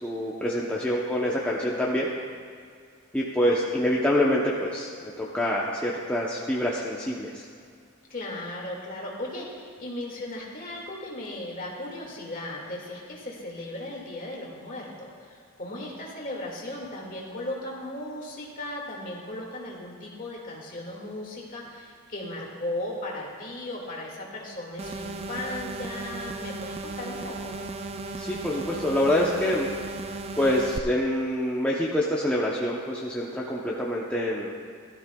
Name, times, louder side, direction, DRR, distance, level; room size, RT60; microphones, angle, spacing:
voice 1, 0.0-2.1 3.1-7.4 28.2-29.7 30.4-34.5, left 1 dB, 5° left, -5 dB, 0.7 m, -26 dB
voice 2, 8.1-27.5, left 1 dB, 40° left, -2 dB, 2.0 m, -36 dB
sound 1, 24.8-30.8, right 3 dB, 25° right, 0.3 m, -36 dB
16.5 x 12.5 x 2.3 m, 2.1 s
head